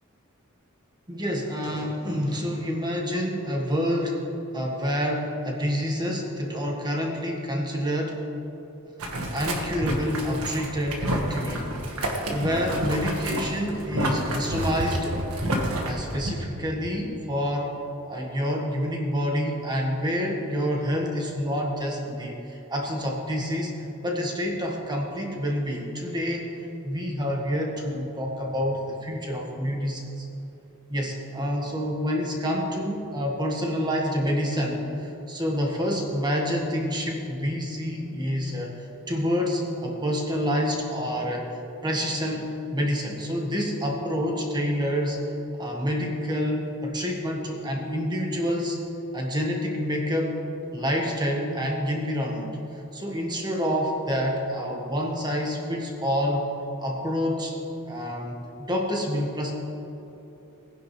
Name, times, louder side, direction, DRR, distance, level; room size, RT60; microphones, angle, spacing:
voice 1, 1.1-4.2 4.5-8.2 9.0-11.7 12.3-15.2 15.9-17.7 18.1-26.5 26.8-30.3 30.9-41.4 41.8-45.2 45.6-48.8 49.1-50.4 50.7-52.5 52.9-56.5 56.8-57.5 57.8-59.5, equal, 20° right, 0 dB, 1.7 m, -28 dB
Boiling, 9.0-16.3, right 1 dB, 80° right, 1.7 m, -29 dB
19.5 x 10.0 x 3.3 m, 3.0 s
head